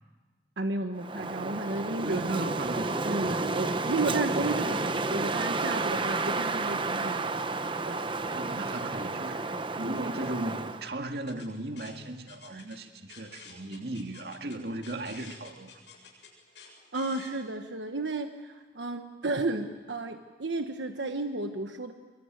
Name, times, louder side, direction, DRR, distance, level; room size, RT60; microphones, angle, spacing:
voice 1, 0.6-2.2 3.0-7.3 7.9-8.0 9.8-10.0 16.9-21.9, right 2 dB, 85° right, 1.3 m, -33 dB
Wind, 1.0-10.9, right 3 dB, 25° right, 0.9 m, -31 dB
voice 2, 2.0-3.1 8.3-15.7, right 2 dB, 60° right, 2.1 m, -36 dB
sound 1, 11.1-17.3, left 5 dB, 80° left, 7.8 m, -51 dB
25.5 x 24.0 x 9.2 m
head